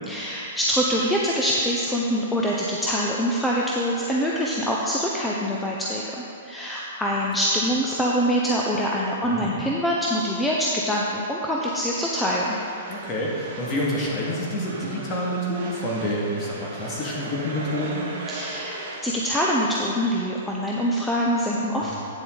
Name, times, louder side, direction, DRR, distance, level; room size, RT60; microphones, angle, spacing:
voice 1, 0.1-6.0 6.5-12.6 18.3-21.9, equal, 5° left, -4 dB, 0.7 m, -24 dB
sound 1, 11.9-19.0, right 2 dB, 50° right, 1.7 m, -38 dB
voice 2, 12.9-18.1 21.8-21.9, equal, 30° left, -4 dB, 2.1 m, -28 dB
9.0 x 7.5 x 3.9 m, 2.8 s
hypercardioid pair, 130°, 0 cm